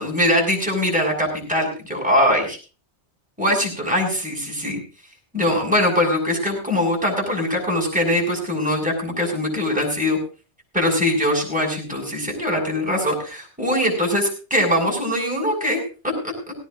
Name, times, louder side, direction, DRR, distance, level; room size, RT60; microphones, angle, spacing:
voice 1, 0.0-2.6 3.4-4.8 5.3-10.2 10.7-16.5, left 1 dB, 5° right, -1 dB, 6.6 m, -22 dB
18.0 x 18.0 x 2.6 m, 0.36 s
omnidirectional pair, 1.2 m